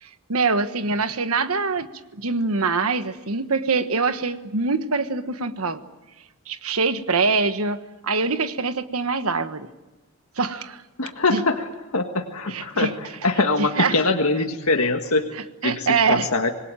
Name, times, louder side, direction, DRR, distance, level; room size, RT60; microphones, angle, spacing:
voice 1, 0.0-1.9 2.1-5.8 6.5-9.7 10.4-10.8 11.3-11.4 12.5-12.9 13.6-14.0 15.3-16.3, right 4 dB, 85° right, 10 dB, 1.4 m, -24 dB
voice 2, 11.0-11.6 11.9-12.9 13.2-15.3 15.6-16.5, left 3 dB, 85° left, 4 dB, 1.7 m, -22 dB
26.5 x 21.0 x 9.1 m, 1.1 s
head